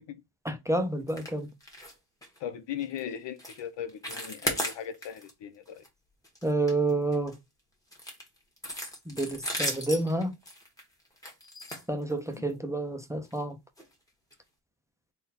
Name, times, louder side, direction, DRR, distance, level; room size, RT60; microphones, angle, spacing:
voice 1, 0.4-1.5 6.4-7.4 9.1-10.3 11.9-13.6, right 2 dB, 10° right, 0.4 m, -29 dB
sound 1, 1.1-1.3 1.6-1.9 2.2-2.4 2.8-3.0 3.4-3.6 3.9-5.3 5.7-5.9 6.2-7.4 7.9-12.5 13.2-13.4 13.8-13.9 14.3-14.4, equal, 10° left, 1.1 m, -36 dB
voice 2, 2.4-5.8 12.3-12.5, left 9 dB, 80° left, 0.7 m, -38 dB
4.1 x 2.3 x 3.9 m
wide cardioid pair, 175°, 43 cm